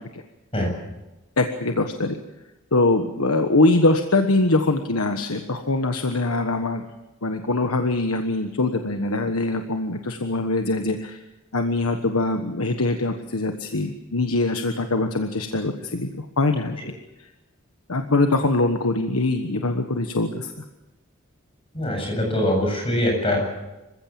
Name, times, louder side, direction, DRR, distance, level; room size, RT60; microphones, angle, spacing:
voice 1, 1.4-2.2 2.7-6.8 7.2-11.2 11.5-16.9 17.2-17.3 17.9-20.5, left 2 dB, 90° left, 6 dB, 1.4 m, -23 dB
voice 2, 21.7-23.4, left 1 dB, 25° left, 2 dB, 7.6 m, -23 dB
26.5 x 16.0 x 7.7 m, 1.0 s
head